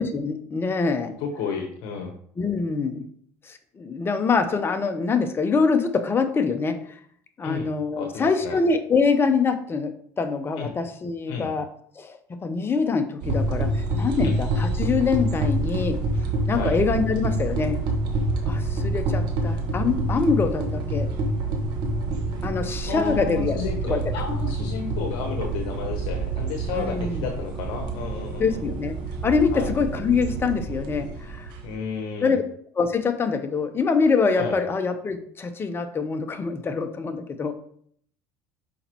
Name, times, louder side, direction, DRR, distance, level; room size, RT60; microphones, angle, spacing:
voice 1, 0.0-1.1 2.4-3.1 3.4-7.0 7.4-11.7 12.0-16.0 16.5-17.8 18.4-21.1 22.4-23.6 23.8-24.0 26.7-27.3 28.4-28.9 29.2-31.5 32.2-32.4 32.8-37.5, left 5 dB, 30° left, 7 dB, 0.9 m, -24 dB
voice 2, 1.2-2.1 7.4-7.7 8.0-8.6 10.6-10.7 11.3-11.5 14.2-14.4 16.5-16.7 22.9-28.6 29.5-29.7 31.6-32.4 34.3-34.5, left 6 dB, 70° left, 3 dB, 1.1 m, -32 dB
sound 1, 13.2-31.7, right 2 dB, 65° right, 1.3 m, -27 dB
6.4 x 5.2 x 3.0 m, 0.62 s
supercardioid pair, 90°, 8 cm